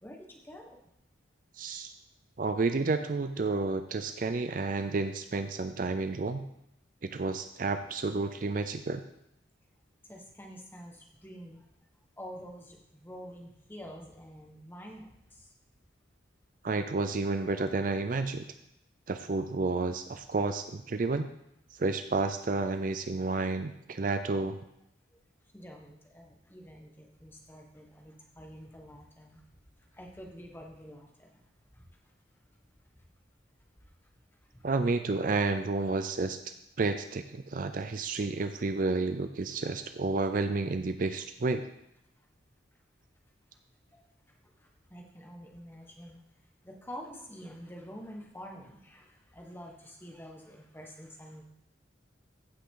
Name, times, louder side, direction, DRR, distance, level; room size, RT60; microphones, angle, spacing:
voice 1, 0.0-0.8 10.1-11.6 12.2-15.1 25.5-29.4 29.9-31.3 43.9-44.0 44.9-46.2 46.6-51.4, equal, 10° left, 1 dB, 1.3 m, -47 dB
voice 2, 1.6-1.9 2.4-6.4 7.0-9.0 16.6-18.4 19.1-21.3 21.8-24.6 34.6-36.4 36.8-41.6, right 3 dB, 45° right, 9 dB, 0.4 m, -30 dB
15.0 x 6.0 x 3.8 m, 0.80 s
head